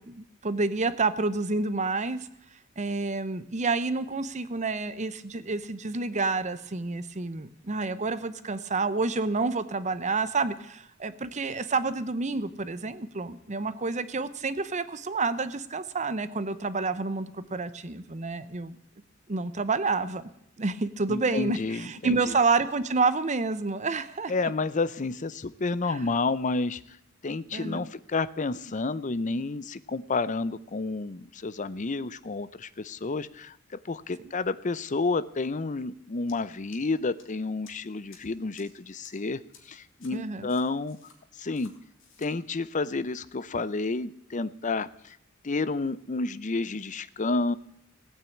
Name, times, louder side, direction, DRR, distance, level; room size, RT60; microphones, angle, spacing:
voice 1, 0.0-2.3 2.8-18.8 19.3-20.3 20.6-24.5 25.8-26.1 27.5-27.9 40.1-40.5, right 3 dB, 35° right, 14 dB, 0.8 m, -29 dB
voice 2, 21.1-22.2 24.3-26.8 27.2-33.6 33.8-39.4 39.7-41.0 41.4-41.7 42.2-45.2 45.4-47.6, left 3 dB, 35° left, 16 dB, 0.6 m, -30 dB
sound 1, 36.3-36.4 36.7-37.2 37.7-37.8 38.1-38.2 38.6-38.7 39.0-39.1 39.5-39.6 40.0-40.1 40.5-41.2 41.6-41.7 42.0-42.3, left 6 dB, 65° left, 3.0 m, -53 dB
16.5 x 9.1 x 8.5 m, 0.77 s
head